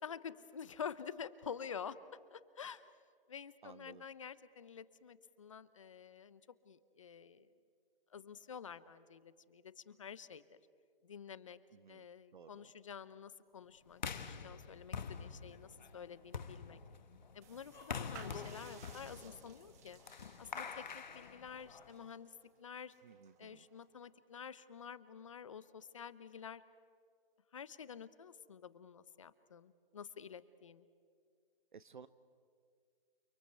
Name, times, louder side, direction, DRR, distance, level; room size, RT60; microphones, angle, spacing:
voice 1, 0.0-2.0 2.3-2.9 3.3-7.5 8.1-10.6 11.0-11.6 11.9-16.8 17.3-20.0 20.4-22.9 23.4-26.6 27.5-30.8, left 7 dB, 35° left, 16 dB, 0.8 m, -49 dB
voice 2, 3.6-4.0 11.7-12.0 12.3-12.7 23.0-23.7 31.7-32.1, right 6 dB, 55° right, 13 dB, 0.8 m, -56 dB
sound 1, 13.9-22.1, left 6 dB, 50° left, 1.5 m, -46 dB
sound 2, 17.4-24.1, right 8 dB, 15° right, 1.1 m, -60 dB
29.5 x 22.5 x 8.1 m, 2.1 s
hypercardioid pair, 165°, 29 cm